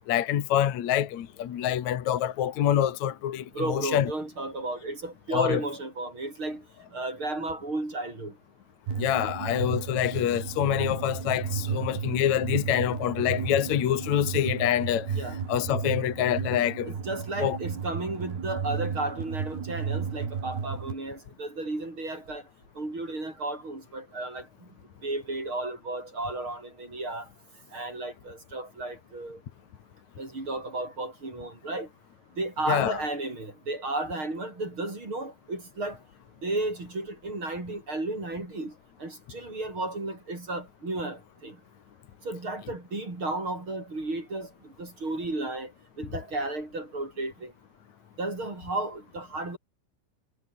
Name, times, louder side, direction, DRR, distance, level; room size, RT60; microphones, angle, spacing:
voice 1, 0.1-4.1 5.3-5.6 8.9-15.2 15.5-16.9 17.4-17.6 32.7-33.0, left 11 dB, 60° left, 2.0 m, -26 dB
voice 2, 3.5-6.6 6.9-8.3 15.1-15.4 16.8-22.4 22.8-24.5 25.0-27.2 27.7-29.4 30.2-31.9 32.4-36.0 36.4-38.7 39.0-41.6 42.2-44.5 44.8-45.7 46.0-47.5 48.2-49.6, right 2 dB, 25° right, 6.7 m, -33 dB
sound 1, 8.9-20.9, right 6 dB, 55° right, 6.2 m, -33 dB
omnidirectional pair, 5.6 m